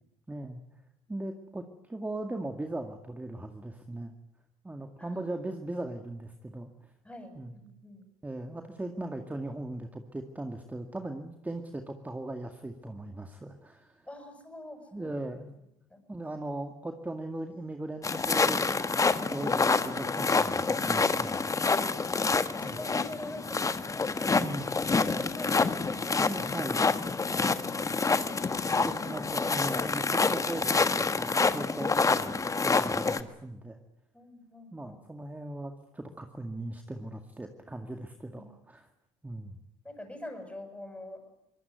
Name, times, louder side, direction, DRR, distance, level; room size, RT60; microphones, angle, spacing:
voice 1, 0.3-0.6 1.1-4.1 4.6-6.9 7.4-7.6 8.2-14.1 14.9-15.5 16.1-21.6 22.6-22.8 24.2-24.7 26.1-26.9 28.8-30.7 31.2-33.8 34.7-38.9 39.2-39.6, right 2 dB, 10° right, 5 dB, 2.1 m, -38 dB
voice 2, 5.0-5.3 7.0-8.1 14.1-15.2 15.9-16.0 16.3-16.5 22.6-24.4 24.9-26.1 27.3-29.3 34.1-35.0 38.3-38.5 39.8-41.2, left 1 dB, 10° left, 7 dB, 7.6 m, -45 dB
sound 1, 18.0-33.2, left 4 dB, 25° left, 1.5 m, -27 dB
23.5 x 19.5 x 9.6 m, 0.85 s
supercardioid pair, 80°, 13 cm